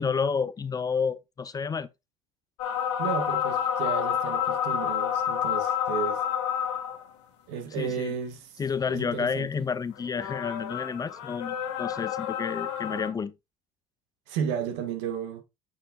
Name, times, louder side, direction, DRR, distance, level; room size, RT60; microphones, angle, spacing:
voice 1, 0.0-1.9 7.7-8.1 8.6-13.3, left 5 dB, 25° left, 0.6 m, -30 dB
sound 1, 2.6-7.1 10.0-13.1, left 9 dB, 80° left, 1.8 m, -29 dB
voice 2, 3.0-6.2 7.5-8.5 8.9-9.5 14.3-15.4, right 7 dB, 75° right, 1.7 m, -33 dB
8.6 x 5.6 x 2.4 m
hypercardioid pair, 75°, 15 cm